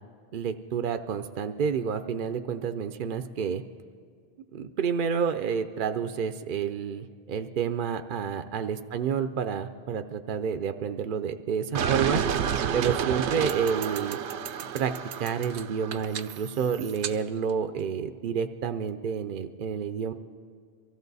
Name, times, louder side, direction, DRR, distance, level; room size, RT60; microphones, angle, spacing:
voice 1, 0.3-3.6 4.5-12.2 12.7-14.2 14.7-14.9 15.2-20.1, right 7 dB, 55° right, 8 dB, 0.6 m, -29 dB
sound 1, 11.8-17.1, right 8 dB, 85° right, 0.9 m, -30 dB
23.5 x 14.5 x 4.0 m, 2.2 s
omnidirectional pair, 1.1 m